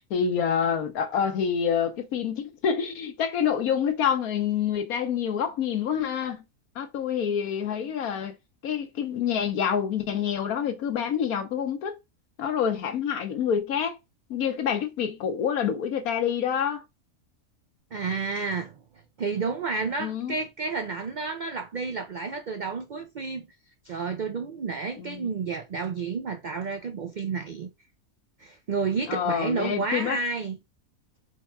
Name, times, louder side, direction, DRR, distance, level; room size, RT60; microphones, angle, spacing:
voice 1, 0.1-6.4 6.7-8.3 8.6-12.0 12.4-14.0 14.3-16.8 20.0-20.3 25.0-25.3 29.1-30.2, left 8 dB, 90° left, 1.4 m, -27 dB
voice 2, 17.9-18.8 19.2-23.5 23.8-27.7 28.4-30.6, right 4 dB, 90° right, 0.4 m, -31 dB
4.6 x 2.2 x 4.4 m
omnidirectional pair, 1.5 m